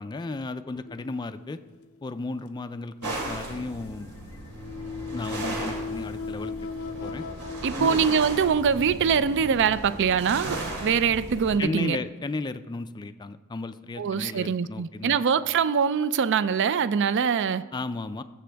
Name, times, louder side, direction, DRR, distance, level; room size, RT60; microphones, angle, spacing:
voice 1, 0.0-1.6 2.0-4.1 5.1-6.5 7.0-7.3 7.8-8.1 11.6-15.2 17.7-18.2, left 3 dB, 20° left, 10 dB, 0.3 m, -34 dB
sound 1, 0.9-1.8 3.8-9.0 9.7-9.9 10.7-10.8, left 5 dB, 70° left, 0.6 m, -38 dB
sound 2, 3.0-11.6, right 2 dB, 90° right, 2.6 m, -36 dB
voice 2, 7.6-12.0 14.0-17.6, right 6 dB, 55° right, 16 dB, 0.4 m, -23 dB
19.0 x 7.6 x 3.4 m, 1.3 s
head